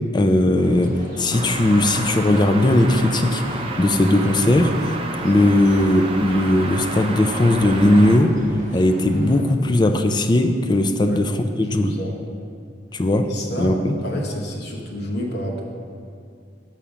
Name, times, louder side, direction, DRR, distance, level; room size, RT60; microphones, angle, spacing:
voice 1, 0.1-4.7 5.2-8.3 8.7-11.3 11.6-11.9 12.9-13.3 13.6-13.9, left 1 dB, 25° left, 6 dB, 0.4 m, -18 dB
sound 1, 0.6-9.4, equal, 45° right, 1.7 m, -38 dB
sound 2, 1.3-8.2, right 2 dB, 30° right, 0.5 m, -30 dB
voice 2, 11.6-12.2 13.3-15.6, equal, 65° left, -1 dB, 1.1 m, -29 dB
7.1 x 5.7 x 5.0 m, 2.4 s
head